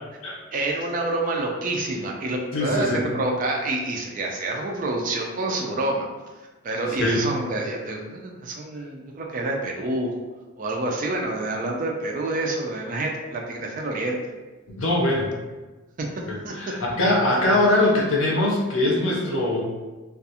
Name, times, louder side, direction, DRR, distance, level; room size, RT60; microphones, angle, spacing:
voice 1, 0.5-6.1 6.6-10.1 10.6-14.2 16.4-16.5, right 2 dB, 40° right, 0 dB, 0.3 m, -27 dB
voice 2, 2.5-3.1 7.0-7.2 14.7-15.3 16.3-19.6, left 1 dB, 70° left, -3 dB, 0.7 m, -22 dB
2.3 x 2.3 x 2.7 m, 1.2 s
head